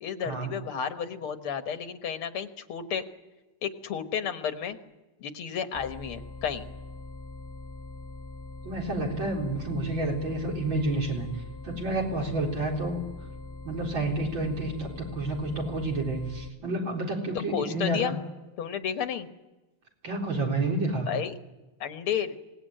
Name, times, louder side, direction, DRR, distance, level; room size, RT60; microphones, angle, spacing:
voice 1, 0.0-3.0 3.6-4.8 5.2-6.7 17.5-18.2 18.6-19.3 21.1-21.4 21.8-22.4, left 8 dB, 80° left, 8 dB, 2.3 m, -32 dB
sound 1, 5.7-16.5, left 2 dB, 15° left, 1.5 m, -42 dB
voice 2, 8.6-11.3 11.6-13.0 13.6-18.1 20.0-21.1, right 2 dB, 60° right, 0 dB, 4.8 m, -29 dB
25.5 x 18.5 x 9.0 m, 1.1 s
omnidirectional pair, 2.3 m